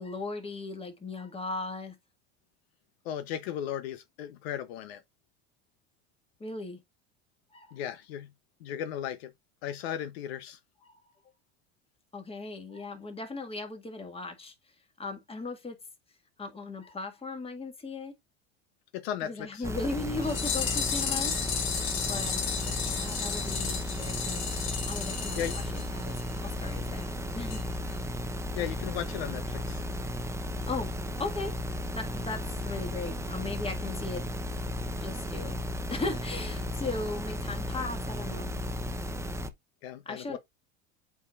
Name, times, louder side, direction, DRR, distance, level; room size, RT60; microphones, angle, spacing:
voice 1, 0.0-1.9 6.4-6.8 7.5-7.7 10.8-11.0 12.1-14.5 15.0-15.8 16.4-18.1 19.2-21.4 22.1-24.4 24.9-27.7 30.7-30.9 31.2-31.6 31.9-34.3 35.0-35.6 35.9-38.5 40.0-40.4, left 3 dB, 20° left, 1.8 m, -37 dB
voice 2, 3.0-5.0 7.7-8.3 8.6-9.3 9.6-10.6 18.9-19.6 25.3-25.6 28.5-29.8 39.8-40.4, left 10 dB, 75° left, 0.8 m, -36 dB
sound 1, 19.6-39.5, left 1 dB, 10° right, 0.7 m, -34 dB
sound 2, 20.2-26.4 26.7-26.8 27.0-27.1 27.5-27.6 27.9-28.0, left 7 dB, 60° left, 2.2 m, -33 dB
8.1 x 4.9 x 2.4 m
supercardioid pair, 95°, 31 cm